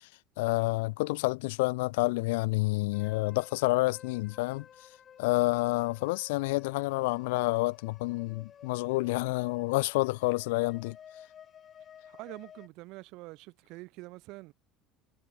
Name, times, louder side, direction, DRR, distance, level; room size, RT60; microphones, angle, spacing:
voice 1, 0.4-4.7 5.2-11.0, left 23 dB, 75° left, 0.4 m, -29 dB
sound 1, 2.9-12.7, left 9 dB, 40° left, 1.4 m, -53 dB
voice 2, 12.1-14.5, right 22 dB, 65° right, 2.7 m, -46 dB
hypercardioid pair, 70°, 0 cm